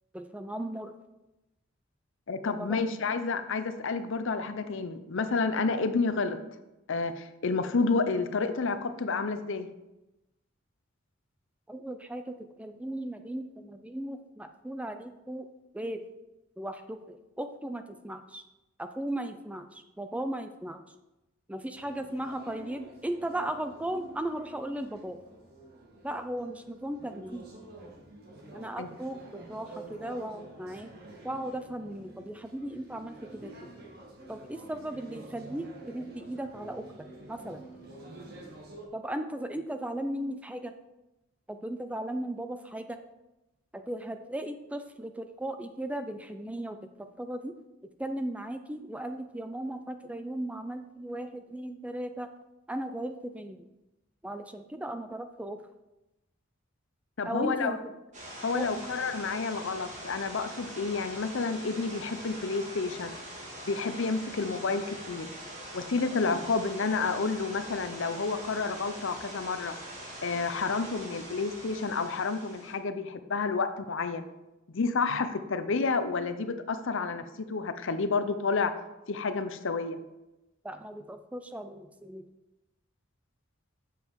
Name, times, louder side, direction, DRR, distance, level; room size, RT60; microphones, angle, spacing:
voice 1, 0.1-0.9 2.6-2.9 11.7-15.5 15.7-16.0 16.6-18.4 18.8-20.8 21.5-25.2 26.0-27.5 28.5-30.9 31.2-33.7 34.3-37.7 38.9-40.7 41.5-43.0 43.7-47.6 48.0-52.3 52.7-53.6 54.2-55.6 57.3-57.8 58.5-59.0 80.6-82.3, right 1 dB, 5° right, 8 dB, 0.4 m, -37 dB
voice 2, 2.3-6.4 6.9-9.7 28.8-28.9 57.2-57.8 58.4-63.2 63.7-65.3 65.7-69.8 70.2-74.3 74.7-78.7 79.1-80.0, left 4 dB, 65° left, 10 dB, 0.7 m, -30 dB
sound 1, 21.7-38.9, right 2 dB, 50° right, 1.7 m, -49 dB
sound 2, 58.1-72.7, right 1 dB, 35° right, 2.2 m, -43 dB
7.6 x 6.9 x 4.7 m, 0.97 s
head